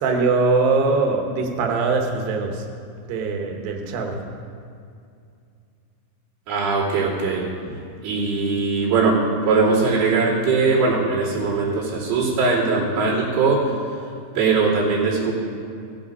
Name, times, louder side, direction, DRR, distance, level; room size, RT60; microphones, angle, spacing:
voice 1, 0.0-2.7 3.1-4.3, right 4 dB, 85° right, 2 dB, 2.0 m, -22 dB
voice 2, 6.5-7.8 8.0-9.2 9.5-13.6 14.3-15.3, right 4 dB, 55° right, -8 dB, 4.6 m, -20 dB
15.5 x 8.6 x 5.3 m, 2.4 s
omnidirectional pair, 5.7 m